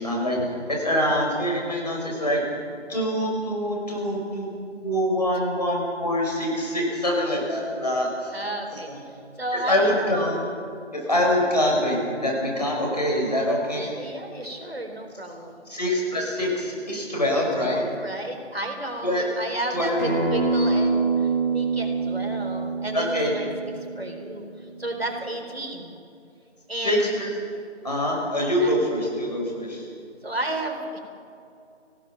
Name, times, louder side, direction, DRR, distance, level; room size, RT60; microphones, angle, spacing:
voice 1, 0.0-2.4 2.9-4.5 4.8-8.3 8.9-9.0 9.7-10.4 11.0-13.9 15.7-17.8 19.0-19.2 19.7-20.0 22.9-23.3 26.8-27.3 27.8-29.8, left 1 dB, 35° left, -2 dB, 5.9 m, -24 dB
voice 2, 8.3-8.9 9.4-10.1 13.7-15.7 17.5-26.0 26.7-27.0 28.6-28.7 30.2-31.0, right 1 dB, 55° right, 4 dB, 4.1 m, -33 dB
Acoustic guitar, 20.0-25.2, right 4 dB, 15° right, 4.2 m, -26 dB
26.0 x 18.5 x 6.1 m, 2.5 s
figure-of-eight pair, 170°, 36 cm